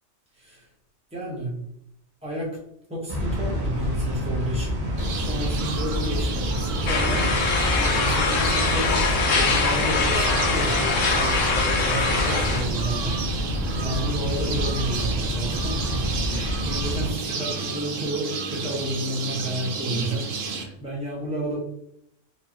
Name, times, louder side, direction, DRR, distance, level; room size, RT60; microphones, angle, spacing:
voice 1, 1.1-1.6 2.2-2.5 2.9-4.8 5.2-11.3 11.8-13.1 13.8-16.0 16.3-21.6, right 1 dB, 5° right, -5 dB, 1.2 m, -31 dB
sound 1, 3.1-17.1, equal, 35° right, 0.8 m, -28 dB
sound 2, 5.0-20.6, right 4 dB, 85° right, 1.0 m, -32 dB
sound 3, 6.9-12.6, left 4 dB, 80° left, 1.1 m, -23 dB
4.6 x 2.8 x 2.9 m, 0.73 s
omnidirectional pair, 1.3 m